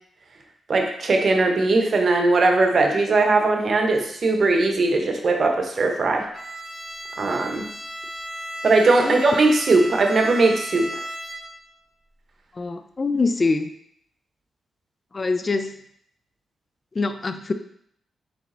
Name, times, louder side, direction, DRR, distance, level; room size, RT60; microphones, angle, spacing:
voice 1, 0.7-6.3 7.2-7.7 8.6-10.9, right 3 dB, 55° right, 3 dB, 0.8 m, -19 dB
Bowed string instrument, 6.3-11.8, right 1 dB, 10° right, 1.8 m, -35 dB
voice 2, 12.6-13.7 15.1-15.8 17.0-17.5, left 3 dB, 40° left, 9 dB, 0.4 m, -24 dB
4.0 x 3.3 x 3.8 m, 0.68 s
supercardioid pair, 55°, 0 cm